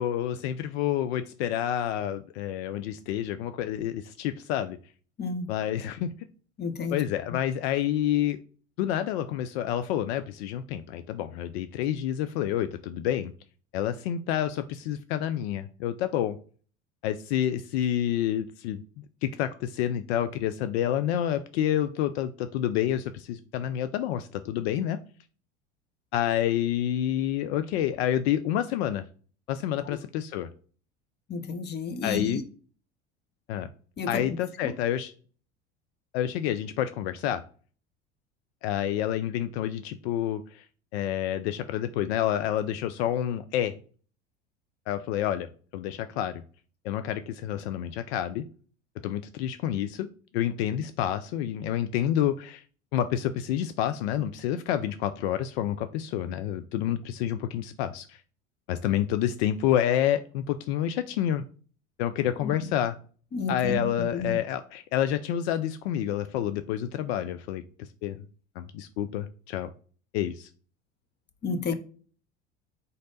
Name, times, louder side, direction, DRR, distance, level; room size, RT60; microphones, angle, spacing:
voice 1, 0.0-4.8 5.5-6.1 6.9-8.4 8.8-13.3 13.7-16.4 17.0-18.8 19.2-25.0 26.1-29.0 29.5-30.5 32.0-32.4 33.5-33.7 34.1-35.1 36.1-37.4 38.6-40.6 40.9-43.7 44.9-45.5 45.7-46.4 46.8-48.4 49.0-50.1 50.3-52.6 52.9-58.2 58.7-61.4 62.0-63.0 63.5-68.2 68.6-69.7 70.1-70.5, left 11 dB, 65° left, 11 dB, 0.5 m, -28 dB
voice 2, 5.2-5.5 6.6-7.0 31.3-32.4 34.0-34.2 34.6-34.7 62.4-62.6 63.3-64.4 71.4-71.7, left 4 dB, 30° left, 10 dB, 0.9 m, -31 dB
4.0 x 3.2 x 3.9 m, 0.41 s
hypercardioid pair, 70°, 35 cm